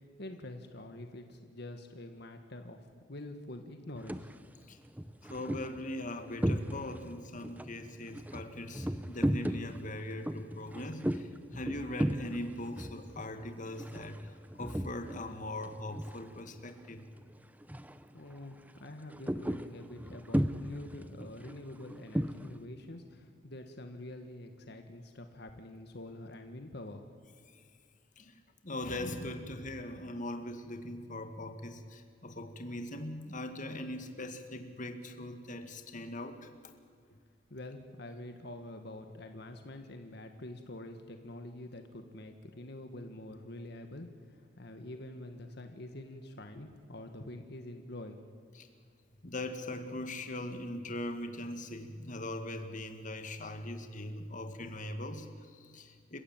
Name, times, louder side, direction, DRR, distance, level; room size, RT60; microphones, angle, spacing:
voice 1, 0.2-4.3 18.1-27.0 37.1-37.2 37.5-48.3, left 1 dB, 65° left, 6 dB, 1.7 m, -46 dB
sound 1, 3.9-4.3 4.9-7.1 7.4-15.3 15.6-16.7 17.0-17.2 17.6-18.0 18.3-22.6, equal, 10° right, 0.8 m, -36 dB
voice 2, 5.2-17.1 27.5-27.6 28.2-36.5 48.6-48.7 49.2-56.2, left 1 dB, 45° left, 7 dB, 2.0 m, -41 dB
29.0 x 16.0 x 9.0 m, 2.2 s
head